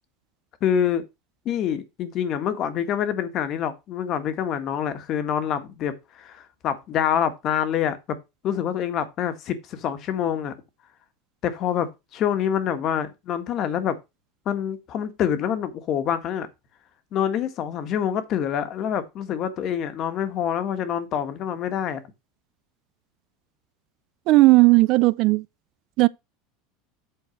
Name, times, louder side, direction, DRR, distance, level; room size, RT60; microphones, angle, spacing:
voice 1, 0.6-1.0 1.4-8.2 8.4-10.5 11.4-14.0 14.4-16.5 17.1-22.0, left 9 dB, 40° left, 1.5 m, -26 dB
voice 2, 24.3-25.4 26.0-26.1, right 22 dB, 50° right, 0.4 m, -16 dB
8.1 x 4.6 x 5.8 m
supercardioid pair, 145°, 0 cm